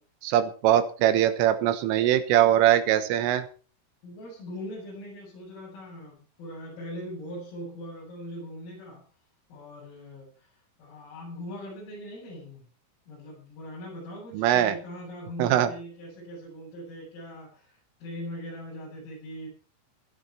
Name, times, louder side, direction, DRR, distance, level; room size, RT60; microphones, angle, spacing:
voice 1, 0.2-3.5 14.3-14.8 15.4-15.7, right 11 dB, 80° right, 10 dB, 3.8 m, -22 dB
voice 2, 4.0-9.1 9.5-10.5 10.8-12.7 13.1-19.5, equal, 80° left, -6 dB, 8.9 m, -41 dB
17.0 x 11.5 x 4.6 m, 0.38 s
omnidirectional pair, 5.9 m